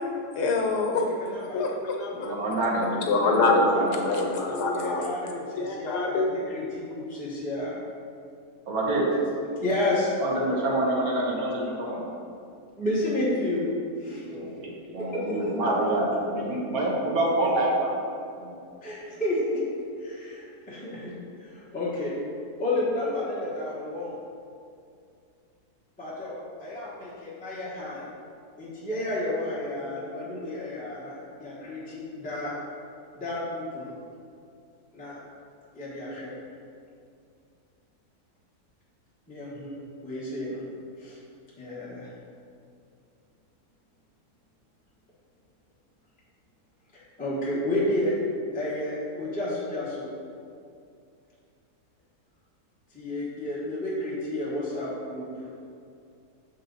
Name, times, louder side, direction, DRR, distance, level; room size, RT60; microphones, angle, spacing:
voice 1, 0.3-1.0 1.5-2.4 3.1-5.1 5.6-6.3, left 3 dB, 80° left, 2 dB, 1.3 m, -25 dB
voice 2, 0.9-1.7 3.7-4.3 4.7-7.8 9.1-9.2 9.6-10.1 12.8-13.7 14.0-14.2 15.0-15.7 18.8-19.6 20.0-22.1 22.6-24.2 26.0-26.3 26.6-28.0 28.6-32.6 33.2-33.9 34.9-35.2 35.7-36.3 39.3-39.7 40.0-40.6 41.0-41.2 41.6-42.1 46.9-48.1 48.5-50.1 52.9-55.5, left 1 dB, 5° left, -9 dB, 1.0 m, -31 dB
voice 3, 2.2-4.2 8.7-9.1 10.2-12.1 14.2-17.9 18.4-18.6 19.1-19.2, right 1 dB, 65° right, -3 dB, 1.5 m, -27 dB
6.6 x 4.1 x 3.9 m, 2.4 s
omnidirectional pair, 1.7 m